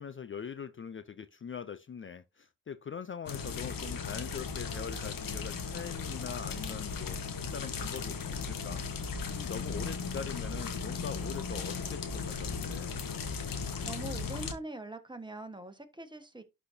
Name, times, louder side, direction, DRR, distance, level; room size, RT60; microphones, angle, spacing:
voice 1, 0.0-13.0, left 7 dB, 35° left, 0.5 m, -42 dB
sound 1, 3.3-14.5, left 5 dB, 75° left, 1.4 m, -37 dB
voice 2, 13.8-16.4, right 2 dB, 15° right, 1.4 m, -43 dB
11.5 x 4.2 x 2.8 m
cardioid pair, 70°, 34 cm